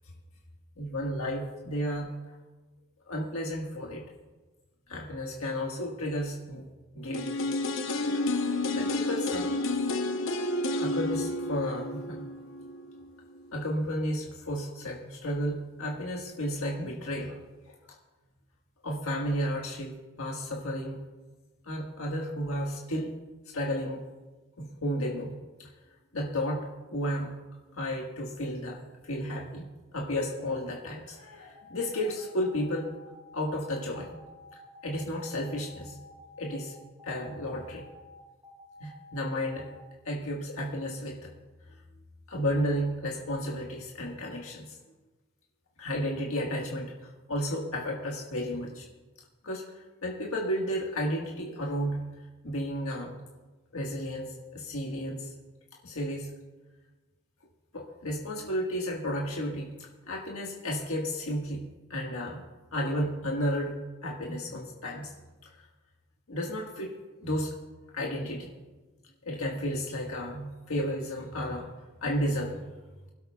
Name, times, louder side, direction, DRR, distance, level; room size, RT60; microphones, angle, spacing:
voice 1, 0.8-2.1 3.1-4.0 4.9-6.6 6.9-7.3 8.0-8.2 8.7-9.6 10.8-12.2 13.5-17.4 18.8-21.0 21.6-23.1 23.5-24.1 24.6-25.7 26.1-27.3 27.7-28.8 29.0-32.9 33.3-34.2 34.8-35.9 36.4-37.9 38.8-39.7 40.0-41.3 42.3-44.7 45.8-48.8 49.4-52.0 52.4-53.1 53.7-55.3 55.8-56.3 57.7-61.6 61.9-62.4 62.7-65.1 66.3-66.9 67.2-67.5 67.9-68.5 69.2-71.7 72.0-72.7, equal, 85° left, -1 dB, 1.6 m, -33 dB
sound 1, 7.1-13.0 13.4-13.5, left 2 dB, 65° left, 0.8 m, -30 dB
sound 2, 31.5-39.8, left 2 dB, 15° right, 2.2 m, -52 dB
24.0 x 12.5 x 2.3 m, 1.2 s
head